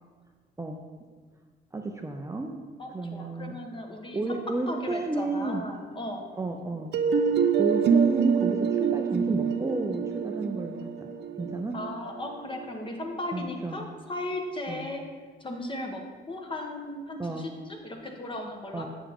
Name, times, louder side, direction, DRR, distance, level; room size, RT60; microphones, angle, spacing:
voice 1, 1.7-2.5 2.9-3.5 4.1-5.6 6.4-6.9 7.6-11.1 11.4-11.8 13.3-13.8 14.7-14.8 17.2-17.5 18.7-18.9, right 2 dB, 15° right, 2 dB, 0.6 m, -32 dB
voice 2, 2.8-4.4 4.7-6.2 11.7-15.0 15.4-16.0 16.3-18.8, left 1 dB, 25° left, 2 dB, 1.3 m, -36 dB
sound 1, 6.9-12.7, right 7 dB, 60° right, 0.6 m, -26 dB
8.7 x 6.7 x 3.6 m, 1.5 s
cardioid pair, 90°, 20 cm